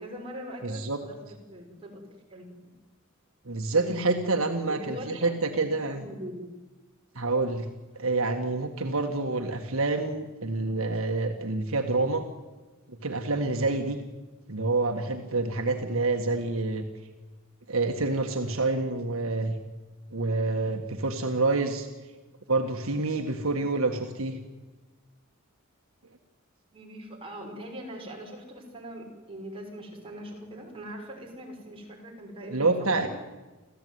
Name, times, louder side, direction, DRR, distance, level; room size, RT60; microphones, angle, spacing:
voice 1, 0.0-2.0 2.3-2.7 3.7-4.0 4.7-5.3 5.6-6.5 23.8-24.1 26.7-33.1, equal, 25° right, -1 dB, 6.1 m, -41 dB
voice 2, 0.6-1.0 3.5-6.1 7.2-7.7 8.0-12.3 13.0-14.0 14.5-16.9 17.7-19.6 20.1-21.9 22.5-24.4 32.5-33.1, right 3 dB, 70° right, 4 dB, 1.8 m, -27 dB
27.0 x 15.5 x 9.6 m, 1.2 s
head